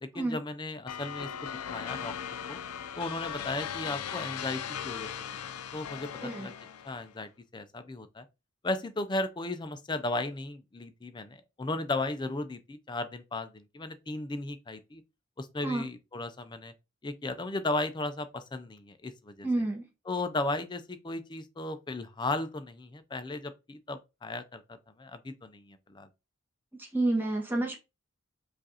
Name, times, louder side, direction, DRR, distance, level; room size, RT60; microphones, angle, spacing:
voice 1, 0.0-2.1 2.5-2.6 3.0-6.5 6.8-8.2 8.6-15.0 15.4-16.7 17.0-19.5 20.1-24.6 25.0-26.1, left 2 dB, 20° left, 0.4 m, -35 dB
sound 1, 0.9-7.1, left 8 dB, 85° left, 0.5 m, -38 dB
voice 2, 19.4-19.8 26.8-27.8, right 2 dB, 10° right, 1.0 m, -29 dB
5.0 x 2.5 x 4.1 m
head